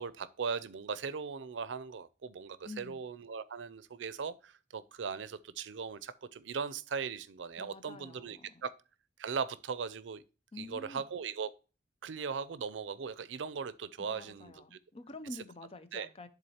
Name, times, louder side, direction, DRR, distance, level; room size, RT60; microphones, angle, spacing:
voice 1, 0.0-8.7 9.2-10.2 10.6-11.5 12.0-14.8 15.9-16.1, right 6 dB, 90° right, 0.5 m, -39 dB
voice 2, 2.7-3.0 7.6-8.5 10.5-11.0 14.0-16.3, left 2 dB, 35° left, 0.6 m, -48 dB
10.5 x 3.9 x 2.8 m
head